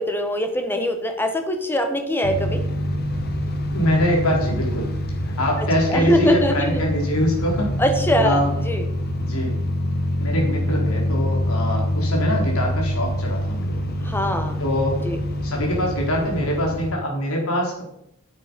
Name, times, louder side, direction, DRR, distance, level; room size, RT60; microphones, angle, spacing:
voice 1, 0.0-2.6 5.6-6.8 7.8-8.4 8.6-8.8 14.0-14.6 15.0-15.2, equal, 10° left, 6 dB, 1.3 m, -22 dB
sound 1, 2.2-16.9, equal, 50° left, 1.3 m, -25 dB
voice 2, 3.7-4.9 5.2-7.7 8.2-8.6 9.2-9.5 10.2-14.0 14.6-15.0 15.4-17.8, equal, 85° left, -1 dB, 4.0 m, -24 dB
9.4 x 8.9 x 5.3 m, 0.73 s
head